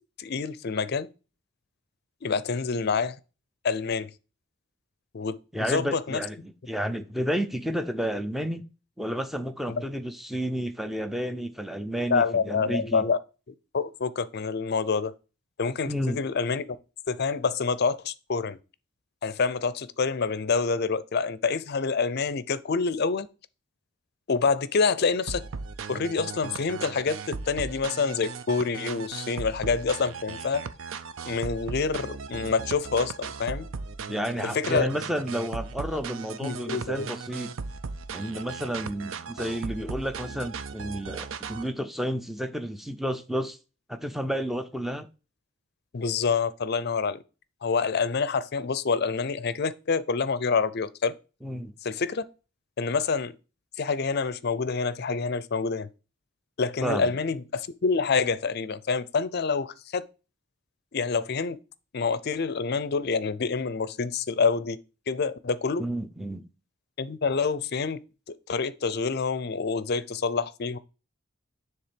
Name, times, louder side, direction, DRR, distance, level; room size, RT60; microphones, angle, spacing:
voice 1, 0.2-1.1 2.2-3.2 3.6-4.1 5.1-6.2 9.7-9.8 12.1-13.2 13.7-15.1 15.6-16.8 17.1-18.6 19.2-23.3 24.3-25.4 25.9-30.6 31.3-33.7 34.5-34.9 36.4-37.1 45.9-47.2 47.6-51.1 51.8-52.2 52.8-53.3 53.8-55.9 56.6-60.0 60.9-61.6 61.9-64.8 65.1-65.9 67.0-68.0 68.3-70.8, left 5 dB, 50° left, 0.5 m, -27 dB
voice 2, 5.5-8.6 9.0-13.0 15.9-16.2 34.1-37.5 38.1-43.6 43.9-45.1 51.4-51.7 56.8-57.1 65.8-66.4, equal, ahead, 0.5 m, -31 dB
sound 1, 25.3-41.7, right 5 dB, 75° right, 0.5 m, -37 dB
7.2 x 3.4 x 5.1 m
head